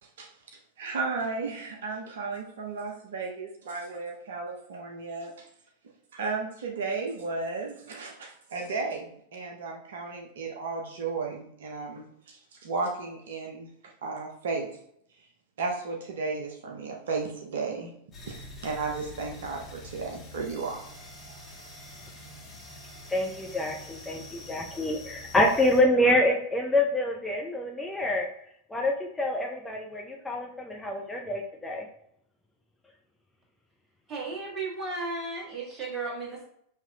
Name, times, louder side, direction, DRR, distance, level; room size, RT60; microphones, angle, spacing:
voice 1, 0.8-5.5 6.1-14.7 15.6-17.9 18.3-20.8, right 4 dB, 60° right, 1 dB, 0.6 m, -34 dB
sound 1, 18.1-25.8, left 1 dB, 25° left, 1.3 m, -46 dB
voice 2, 23.1-28.3 28.7-31.9, left 1 dB, 10° left, 0 dB, 0.5 m, -26 dB
voice 3, 34.1-36.5, right 3 dB, 25° right, -3 dB, 1.4 m, -34 dB
5.6 x 2.9 x 2.3 m, 0.70 s
figure-of-eight pair, 90°, 0 cm